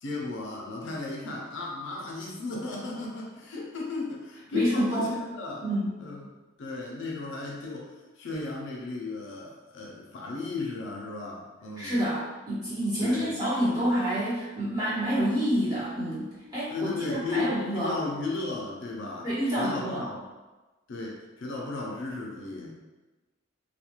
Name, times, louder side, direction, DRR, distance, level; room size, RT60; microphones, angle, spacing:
voice 1, 0.0-5.6 6.0-6.3 6.6-11.9 13.0-13.3 16.7-19.3 19.6-20.2 20.9-22.7, left 3 dB, 55° left, -2 dB, 0.4 m, -35 dB
voice 2, 4.5-5.2 5.6-6.0 11.8-17.9 19.2-20.1, equal, 20° right, -12 dB, 1.0 m, -28 dB
2.2 x 2.2 x 2.9 m, 1.2 s
head